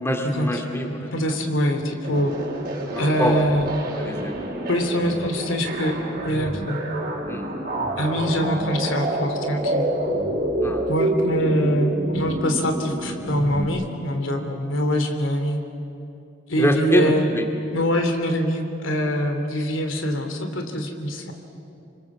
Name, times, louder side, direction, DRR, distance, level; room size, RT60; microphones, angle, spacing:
voice 1, 0.0-1.1 2.9-3.4 3.9-4.5 7.3-7.5 10.6-10.8 16.6-17.5, equal, 15° left, 3 dB, 2.3 m, -24 dB
voice 2, 1.1-2.3 3.0-3.7 4.7-6.0 6.2-6.8 8.0-9.9 10.8-15.6 16.5-17.3 17.7-21.3, equal, 90° left, 5 dB, 2.9 m, -24 dB
sound 1, 2.0-13.6, right 1 dB, 50° right, 5.0 m, -28 dB
27.5 x 24.5 x 7.3 m, 2.7 s
head